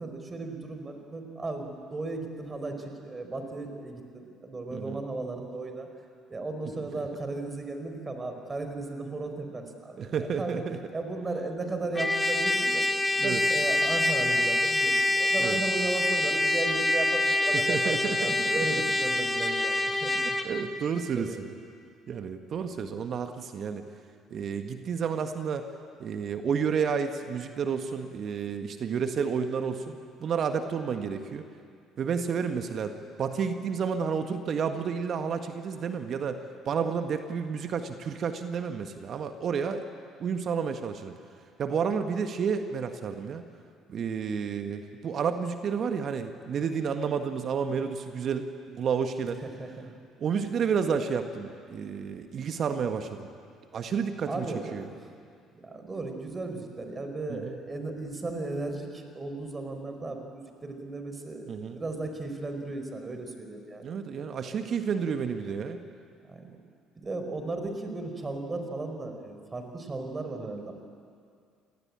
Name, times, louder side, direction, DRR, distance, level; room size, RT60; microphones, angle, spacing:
voice 1, 0.0-5.9 6.3-10.6 10.9-12.8 13.2-20.4 21.2-21.5 49.4-49.9 50.3-50.6 54.2-55.1 55.6-64.0 64.4-65.0 66.2-66.6 66.9-70.7, right 2 dB, 25° right, 6 dB, 4.8 m, -36 dB
voice 2, 4.7-5.0 10.0-10.8 13.2-13.4 15.4-15.6 17.5-18.8 20.1-21.5 22.1-23.8 24.3-25.7 26.0-31.5 32.0-36.4 36.6-39.8 40.2-41.1 41.6-43.4 43.9-49.4 50.2-53.3 53.7-54.8 57.3-57.5 61.5-61.8 63.8-65.8, right 6 dB, 50° right, 7 dB, 1.6 m, -31 dB
Trumpet, 12.0-20.5, left 1 dB, 15° left, 2.4 m, -26 dB
26.5 x 19.5 x 8.9 m, 2.3 s
hypercardioid pair, 55°, 0 cm